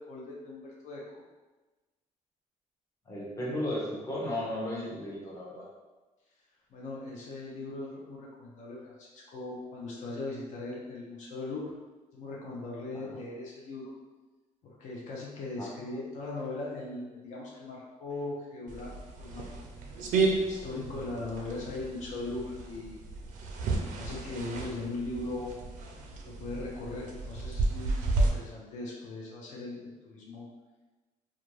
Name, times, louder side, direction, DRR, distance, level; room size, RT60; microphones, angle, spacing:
voice 1, 0.1-1.0 6.7-11.7 12.1-13.9 14.6-18.9 19.2-19.7 20.5-22.9 23.8-25.5 26.3-30.5, left 2 dB, 65° left, -4 dB, 0.5 m, -39 dB
voice 2, 3.1-5.7 12.9-13.2 15.6-15.7, left 1 dB, 25° left, -5 dB, 0.7 m, -35 dB
sound 1, 18.7-28.3, right 3 dB, 75° right, 0.4 m, -33 dB
2.4 x 2.2 x 3.1 m, 1.2 s
cardioid pair, 155°, 13 cm